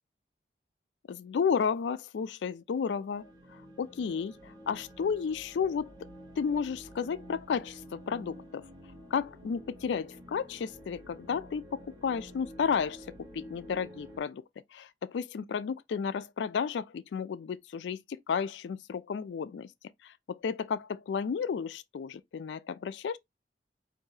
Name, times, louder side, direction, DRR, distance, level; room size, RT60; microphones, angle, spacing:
voice 1, 1.1-5.9 6.4-8.7 9.1-14.4 14.7-19.7 20.0-23.2, left 6 dB, 80° left, 0.3 m, -33 dB
sound 1, 3.1-14.2, equal, 20° right, 2.0 m, -50 dB
4.7 x 2.7 x 2.7 m
head